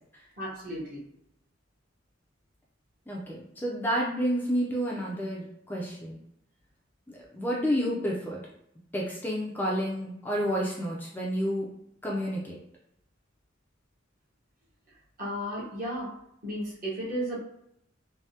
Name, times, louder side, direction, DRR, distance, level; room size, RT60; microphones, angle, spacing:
voice 1, 0.4-1.0 15.2-16.2 16.4-17.4, equal, 45° right, -5 dB, 1.0 m, -34 dB
voice 2, 3.1-6.2 7.1-8.4 8.9-11.7 12.0-12.6, equal, 10° left, -4 dB, 0.4 m, -30 dB
3.4 x 2.1 x 2.7 m, 0.76 s
head